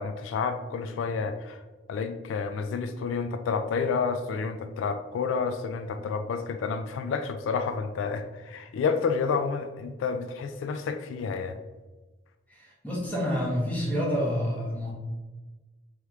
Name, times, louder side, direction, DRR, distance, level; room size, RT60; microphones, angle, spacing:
voice 1, 0.0-1.6 1.9-11.6, left 5 dB, 90° left, 8 dB, 0.3 m, -30 dB
voice 2, 12.5-14.9, equal, 10° left, -5 dB, 1.0 m, -28 dB
3.2 x 3.1 x 3.5 m, 1.2 s
head